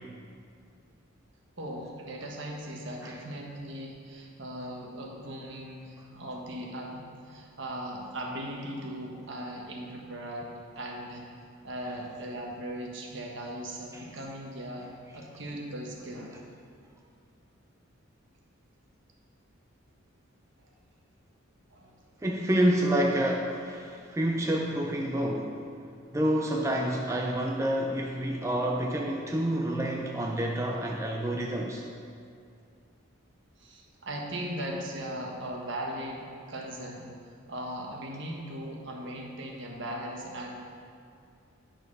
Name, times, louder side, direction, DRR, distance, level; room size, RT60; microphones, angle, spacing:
voice 1, 1.6-11.2 11.6-14.9 15.1-16.4 20.6-20.7 21.7-21.9 33.6-37.1 37.5-40.5, right 1 dB, 65° right, -1 dB, 1.4 m, -38 dB
voice 2, 22.2-25.6 26.1-31.8, right 1 dB, 15° right, 0 dB, 0.5 m, -28 dB
9.2 x 6.1 x 5.4 m, 2.3 s
head